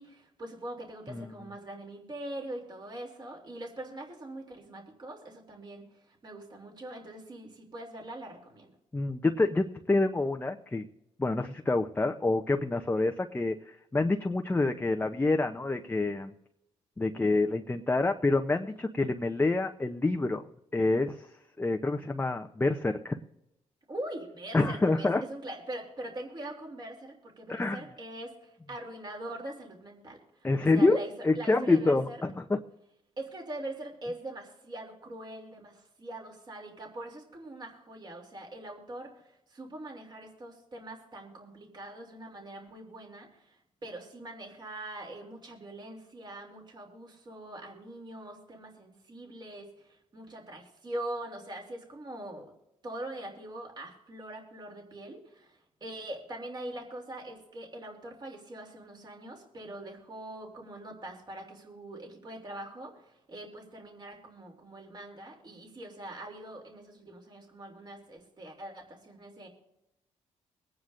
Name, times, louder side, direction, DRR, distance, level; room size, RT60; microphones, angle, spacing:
voice 1, 0.0-8.7 22.0-22.1 23.9-32.2 33.2-52.5 52.8-69.5, right 1 dB, 35° right, 1 dB, 2.9 m, -43 dB
voice 2, 8.9-10.9 11.2-16.3 17.0-20.5 20.7-21.3 21.6-23.2 24.5-25.2 27.5-27.8 30.4-31.0 31.2-32.6, left 2 dB, 15° left, 4 dB, 0.7 m, -27 dB
23.5 x 9.5 x 2.6 m, 0.87 s
cardioid pair, 80°, 13 cm